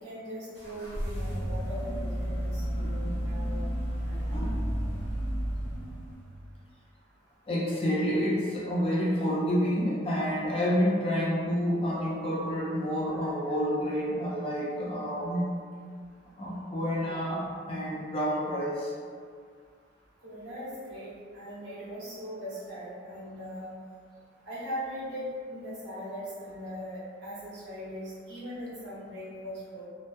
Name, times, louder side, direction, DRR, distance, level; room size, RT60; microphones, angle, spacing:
voice 1, 0.0-3.7 4.0-4.2 20.2-23.7 24.5-29.8, equal, 60° right, -11 dB, 1.0 m, -40 dB
sound 1, 0.5-6.4, equal, 10° left, 0.9 m, -32 dB
voice 2, 4.2-4.7 7.5-15.5 16.4-18.9, equal, 30° left, -5 dB, 0.3 m, -29 dB
2.3 x 2.1 x 2.5 m, 2.1 s
head